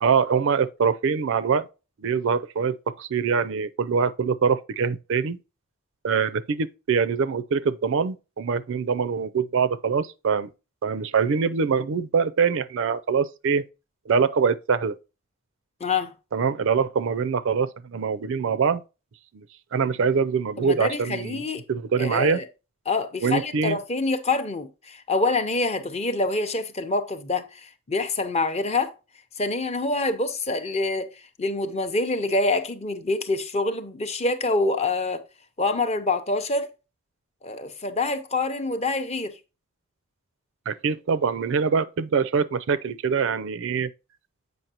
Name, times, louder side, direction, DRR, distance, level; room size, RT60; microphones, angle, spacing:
voice 1, 0.0-1.7 2.0-5.4 6.0-10.5 10.8-13.7 14.1-15.0 16.3-18.8 19.3-19.5 19.7-21.4 21.7-22.4 23.2-23.8 40.7-43.9, right 6 dB, 55° right, 0.4 m, -24 dB
voice 2, 15.8-16.1 20.6-21.6 22.0-22.5 22.9-28.9 29.4-35.2 35.6-36.7 37.4-39.4, left 3 dB, 30° left, 0.6 m, -26 dB
7.8 x 5.3 x 2.8 m
head